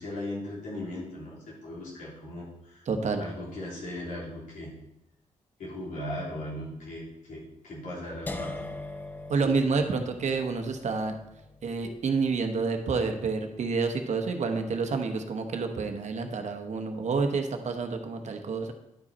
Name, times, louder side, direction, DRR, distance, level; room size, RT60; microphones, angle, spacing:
voice 1, 0.0-2.9 3.2-4.8 5.6-8.7, left 1 dB, 80° left, -5 dB, 3.1 m, -38 dB
voice 2, 2.9-3.2 9.3-11.1 11.6-18.7, right 4 dB, 65° right, 6 dB, 1.0 m, -29 dB
sound 1, 8.3-14.2, left 2 dB, 15° left, 0.6 m, -43 dB
10.5 x 4.9 x 4.2 m, 0.86 s
cardioid pair, 75°, 13 cm